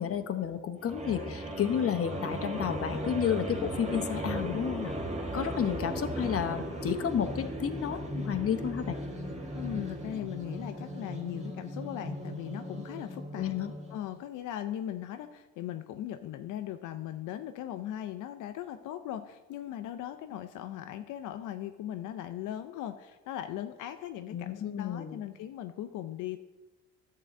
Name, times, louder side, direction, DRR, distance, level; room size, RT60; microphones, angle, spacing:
voice 1, 0.0-4.9 5.3-9.0 13.4-13.7 24.3-25.2, left 8 dB, 50° left, 8 dB, 0.9 m, -31 dB
sound 1, 0.8-14.1, equal, 20° right, 1.7 m, -37 dB
voice 2, 9.5-13.5 13.9-26.4, left 11 dB, 85° left, 9 dB, 0.5 m, -39 dB
11.0 x 3.9 x 7.7 m, 1.1 s
cardioid pair, 90°, 30 cm